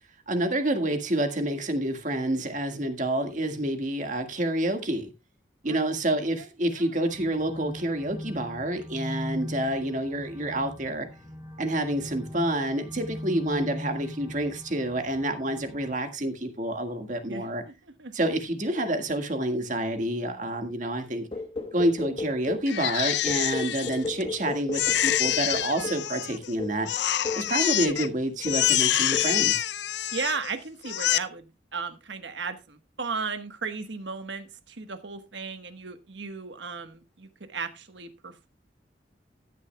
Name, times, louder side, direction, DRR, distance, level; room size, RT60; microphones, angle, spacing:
voice 1, 0.3-5.1 5.6-11.1 11.6-17.6 18.1-21.3 21.7-26.9 27.3-29.7, right 1 dB, 45° right, 6 dB, 1.7 m, -28 dB
voice 2, 5.7-6.8 17.3-17.7 18.0-18.1 30.1-38.5, right 4 dB, 85° right, 9 dB, 1.2 m, -36 dB
sound 1, 7.1-16.0, left 1 dB, 20° right, 3.7 m, -39 dB
sound 2, 21.3-22.7 23.3-26.1 26.6-26.8 27.2-27.5 27.9-28.2 28.5-28.8 29.1-29.4, left 3 dB, 30° left, 1.1 m, -34 dB
Crying sobbing, 22.7-24.3 24.7-26.5 26.9-28.1 28.4-30.5 30.8-31.2, left 12 dB, 75° left, 0.5 m, -26 dB
14.5 x 10.5 x 2.2 m, 0.25 s
head